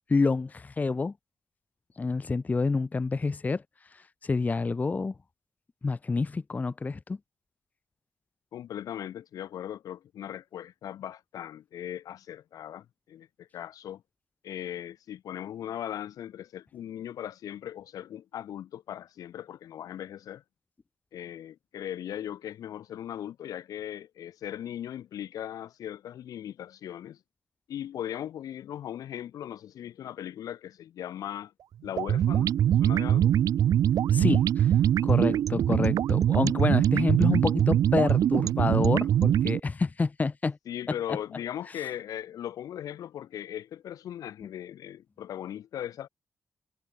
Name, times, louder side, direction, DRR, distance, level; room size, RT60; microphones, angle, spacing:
voice 1, 0.1-1.1 2.0-3.6 4.2-5.1 5.8-7.2 34.1-34.7 35.0-40.6 40.9-41.0, left 4 dB, 25° left, 0.5 m, -28 dB
voice 2, 8.5-14.0 14.4-20.4 21.1-27.2 27.7-31.5 31.8-33.4 40.7-46.1, left 11 dB, 85° left, 1.2 m, -38 dB
sound 1, 32.0-39.6, right 10 dB, 80° right, 0.5 m, -23 dB
cardioid pair, 85°, 6 cm